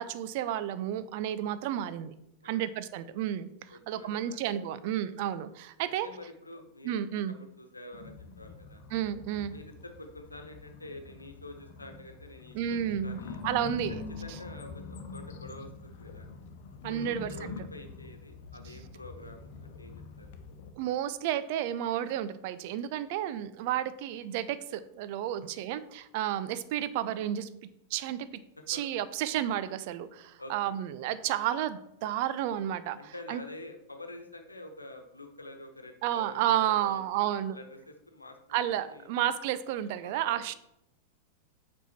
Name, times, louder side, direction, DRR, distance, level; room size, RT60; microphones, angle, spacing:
voice 1, 0.0-2.1 2.4-6.1 6.8-7.3 8.9-9.5 12.5-13.2 13.4-14.0 16.8-17.5 20.8-27.5 27.9-28.3 28.7-33.4 36.0-37.6 38.5-40.5, right 11 dB, 50° right, 14 dB, 0.5 m, -31 dB
voice 2, 3.7-4.4 6.0-8.8 9.5-13.4 14.2-16.3 16.9-20.3 25.3-25.6 28.7-28.8 30.4-30.7 33.0-39.1 40.0-40.4, left 1 dB, 80° left, 6 dB, 1.1 m, -47 dB
sound 1, 7.9-20.7, left 4 dB, 50° left, 1.0 m, -45 dB
8.2 x 5.4 x 4.4 m, 0.82 s
figure-of-eight pair, 90°, 0 cm